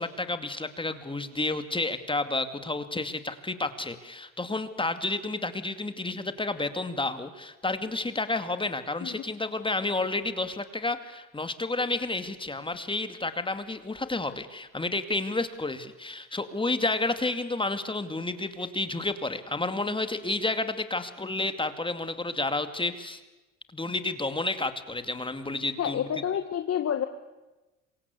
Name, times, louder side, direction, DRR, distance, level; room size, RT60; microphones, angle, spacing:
voice 1, 0.0-23.2 23.7-26.1, left 2 dB, 15° left, 10 dB, 2.3 m, -30 dB
voice 2, 25.8-27.1, left 9 dB, 40° left, 8 dB, 1.8 m, -28 dB
27.0 x 24.0 x 8.3 m, 1.1 s
hypercardioid pair, 75°, 38 cm